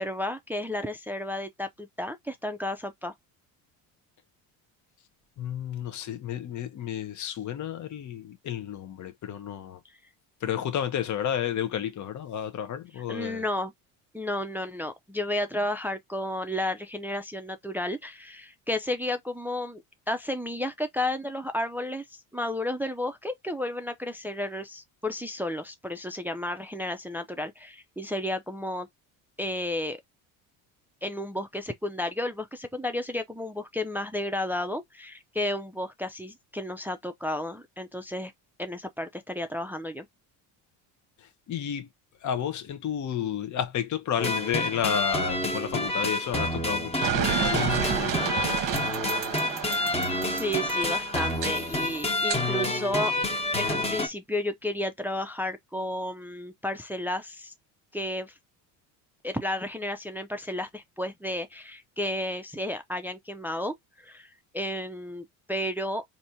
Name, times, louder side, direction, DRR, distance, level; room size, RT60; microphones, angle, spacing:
voice 1, 0.0-3.1 13.1-13.7 14.1-19.8 20.1-28.9 29.4-30.0 31.0-38.3 38.6-40.1 50.2-53.1 53.6-57.5 57.9-58.3 59.2-66.0, left 1 dB, 5° right, 0.4 m, -32 dB
voice 2, 5.4-9.8 10.4-13.4 41.5-41.9 42.2-48.7, left 9 dB, 40° left, 0.9 m, -32 dB
sound 1, 44.2-54.1, left 2 dB, 15° left, 1.2 m, -28 dB
sound 2, 47.0-52.4, right 10 dB, 45° right, 0.9 m, -31 dB
4.2 x 2.8 x 2.7 m
supercardioid pair, 90°, 45 cm